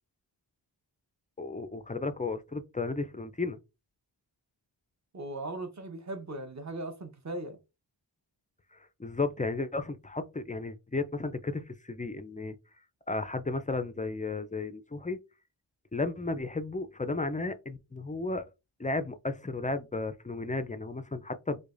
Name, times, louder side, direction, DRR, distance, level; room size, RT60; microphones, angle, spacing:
voice 1, 1.4-3.6 8.7-12.6 13.1-15.2 15.9-18.5 18.8-21.6, left 3 dB, 20° left, 0.3 m, -34 dB
voice 2, 5.1-7.6, right 2 dB, 35° right, 0.9 m, -38 dB
4.7 x 2.2 x 2.5 m
wide cardioid pair, 55°, 47 cm